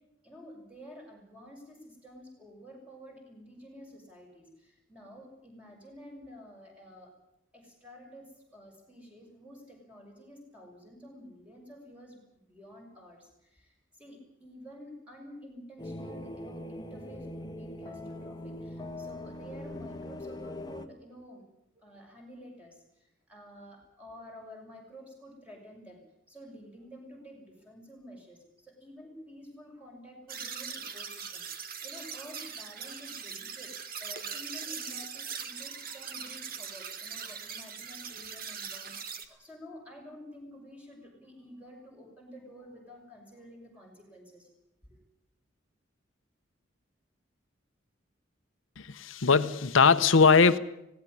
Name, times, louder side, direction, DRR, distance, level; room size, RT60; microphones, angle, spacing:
voice 1, 0.2-7.1 7.5-21.4 21.7-26.0 26.3-44.5 44.9-45.0, equal, 5° right, 0 dB, 6.6 m, -50 dB
sound 1, 15.8-20.9, left 1 dB, 20° left, 1.4 m, -41 dB
sound 2, 30.3-39.2, right 6 dB, 50° right, 2.0 m, -40 dB
voice 2, 48.8-50.6, left 5 dB, 85° left, 11 dB, 0.9 m, -21 dB
18.0 x 17.5 x 10.0 m, 0.85 s
head